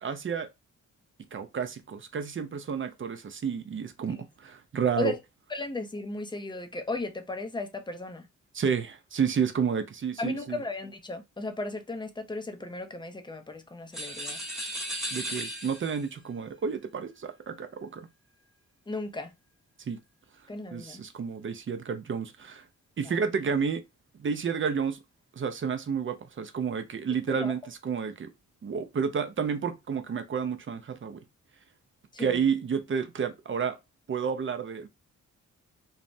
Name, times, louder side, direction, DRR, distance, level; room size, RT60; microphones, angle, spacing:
voice 1, 0.0-0.5 1.3-5.1 8.5-10.6 15.1-18.1 19.9-20.0 20.7-22.6 23.0-23.8 24.2-25.0 25.4-28.3 28.6-31.2 32.2-33.8 34.1-34.9, right 6 dB, 40° right, 0.5 m, -30 dB
voice 2, 5.5-8.2 10.2-14.4 18.9-19.3 20.5-21.0 23.1-23.2 27.3-27.5 32.1-32.4, left 2 dB, 15° left, 0.5 m, -35 dB
sound 1, 13.9-16.1, equal, ahead, 1.1 m, -35 dB
3.2 x 2.0 x 2.6 m
cardioid pair, 75°, 32 cm